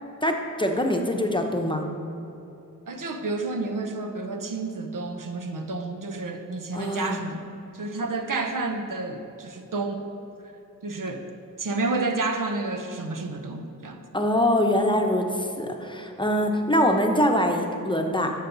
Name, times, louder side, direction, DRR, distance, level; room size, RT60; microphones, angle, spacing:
voice 1, 0.2-1.9 6.7-7.2 14.1-18.3, left 1 dB, 15° left, 3 dB, 0.9 m, -24 dB
voice 2, 2.9-7.4 7.7-10.1 10.8-11.2 11.6-14.0, right 3 dB, 75° right, 5 dB, 0.9 m, -30 dB
11.5 x 6.4 x 4.0 m, 2.9 s
wide cardioid pair, 65°, 33 cm